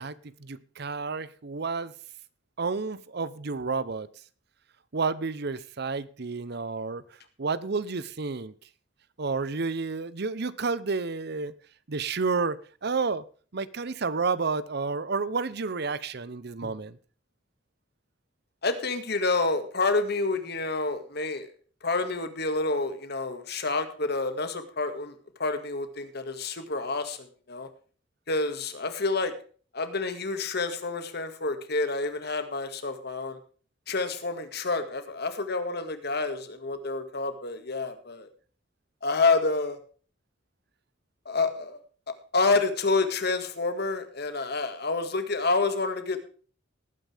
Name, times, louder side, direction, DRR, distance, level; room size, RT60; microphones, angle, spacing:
voice 1, 0.0-1.9 2.6-4.1 4.9-7.0 7.4-8.5 9.2-11.5 11.9-13.2 13.5-17.0, right 4 dB, 60° right, 0.8 m, -30 dB
voice 2, 18.6-21.5 21.8-27.7 28.3-29.3 29.7-33.4 33.9-38.3 39.0-39.8 41.3-41.8 42.3-46.2, left 3 dB, 60° left, 2.0 m, -28 dB
18.5 x 9.2 x 3.5 m
head